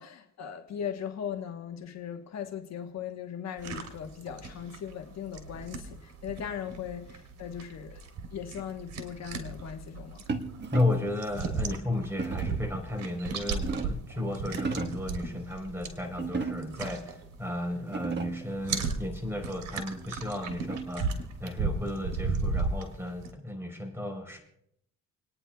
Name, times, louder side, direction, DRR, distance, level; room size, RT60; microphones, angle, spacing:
voice 1, 0.0-8.0 8.3-10.2, left 8 dB, 60° left, 1.1 m, -38 dB
Eating Pineapple Rings, 3.6-17.8 18.1-23.3, right 4 dB, 65° right, 3.2 m, -36 dB
sound 1, 10.3-11.1 12.2-12.6 13.3-14.1 14.5-15.1 16.2-16.9 17.5-17.6 17.8-18.5 19.9-21.1, right 4 dB, 35° right, 1.3 m, -35 dB
voice 2, 10.7-21.1 21.4-24.4, left 2 dB, 10° right, 3.8 m, -33 dB
29.5 x 10.0 x 2.3 m
cardioid pair, 90°, 30 cm